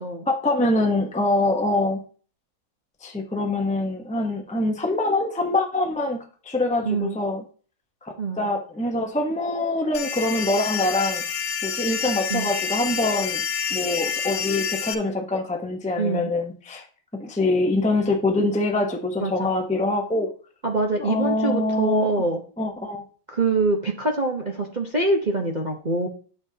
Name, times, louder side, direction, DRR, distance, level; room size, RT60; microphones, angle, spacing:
voice 1, 0.3-2.0 3.0-7.4 8.0-11.2 11.6-13.4 13.7-16.8 17.1-20.3 21.0-22.1 22.6-23.0, left 2 dB, 10° left, 2 dB, 0.4 m, -24 dB
voice 2, 6.8-7.2 8.2-8.5 12.3-12.5 16.0-16.3 19.2-19.5 20.6-22.4 23.3-26.1, right 3 dB, 35° right, 1 dB, 0.8 m, -24 dB
sound 1, 9.9-14.9, left 7 dB, 75° left, 1.7 m, -28 dB
9.6 x 6.9 x 2.9 m, 0.39 s
omnidirectional pair, 2.2 m